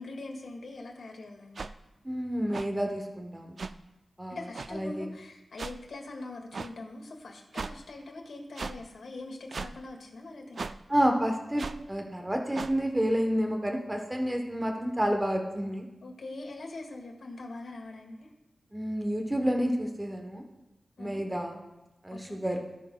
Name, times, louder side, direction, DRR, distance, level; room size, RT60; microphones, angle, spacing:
voice 1, 0.0-1.7 4.3-10.6 16.0-18.3 21.0-21.2 22.1-22.4, left 2 dB, 80° left, 1 dB, 1.8 m, -43 dB
sound 1, 1.6-1.7 2.5-2.7 3.6-3.7 4.5-4.7 5.6-5.7 6.5-6.7 7.5-7.7 8.6-8.8 9.5-9.7 10.6-10.8 11.6-11.8 12.5-12.7, right 4 dB, 55° right, 0.3 m, -36 dB
voice 2, 2.0-3.6 4.2-4.4 4.7-5.1 10.9-15.9 18.7-20.4 21.0-21.6 22.0-22.6, equal, 15° right, 2 dB, 0.9 m, -29 dB
18.0 x 6.3 x 2.3 m, 1.1 s
wide cardioid pair, 135°, 0 cm